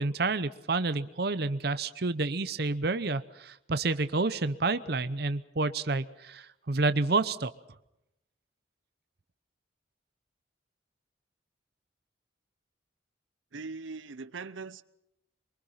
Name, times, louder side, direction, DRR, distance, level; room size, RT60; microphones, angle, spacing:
voice 1, 0.0-7.5, right 3 dB, 55° right, 0.8 m, -29 dB
voice 2, 13.5-14.8, right 4 dB, 85° right, 0.7 m, -40 dB
24.0 x 23.5 x 5.7 m
head